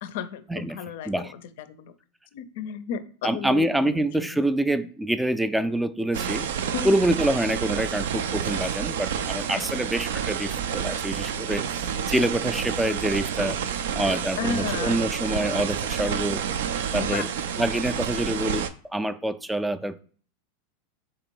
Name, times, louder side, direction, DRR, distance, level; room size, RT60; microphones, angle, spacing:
voice 1, 0.0-1.4 1.7-1.9 2.3-4.3 6.7-7.0 14.4-15.0 17.0-17.3, left 7 dB, 70° left, 0.4 m, -33 dB
voice 2, 3.2-6.5 6.8-13.6 13.9-16.4 16.9-17.3 17.6-18.6 18.9-20.0, right 1 dB, 5° right, 0.3 m, -26 dB
sound 1, 6.1-18.7, right 8 dB, 80° right, 0.4 m, -29 dB
3.8 x 3.0 x 4.5 m
supercardioid pair, 125°, 0 cm